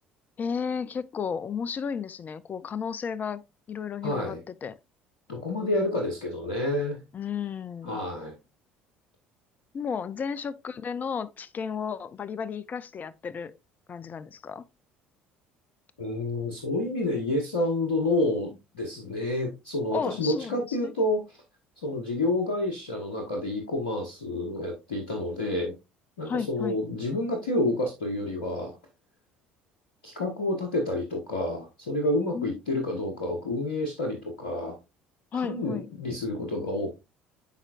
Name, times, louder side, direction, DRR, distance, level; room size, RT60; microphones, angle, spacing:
voice 1, 0.4-3.4 3.7-4.8 7.1-8.0 9.7-13.6 13.9-14.6 19.9-20.9 26.3-26.8 32.3-32.6 35.3-35.9, left 6 dB, 35° left, 0.5 m, -33 dB
voice 2, 4.0-4.4 5.3-7.0 7.8-8.4 16.0-21.4 21.8-25.7 26.2-28.7 30.0-34.8 35.3-36.9, left 1 dB, 80° left, 1.2 m, -29 dB
11.0 x 4.4 x 2.4 m
hypercardioid pair, 60°, 5 cm